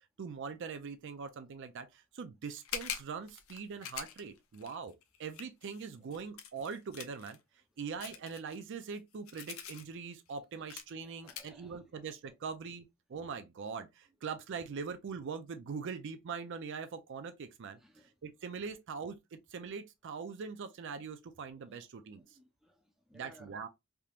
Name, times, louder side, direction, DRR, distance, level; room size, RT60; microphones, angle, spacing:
voice 1, 0.2-4.9 5.2-7.4 7.8-12.8 13.1-17.8 18.2-22.2 23.1-23.7, right 5 dB, 55° right, 0.4 m, -42 dB
sound 1, 2.6-7.4 8.0-9.8 10.3-10.4 10.7-10.9 11.3-11.5, left 9 dB, 65° left, 0.6 m, -43 dB
voice 2, 11.0-12.3 17.8-18.1 21.6-21.7 22.2-23.6, equal, ahead, 0.7 m, -61 dB
3.4 x 2.9 x 2.4 m
head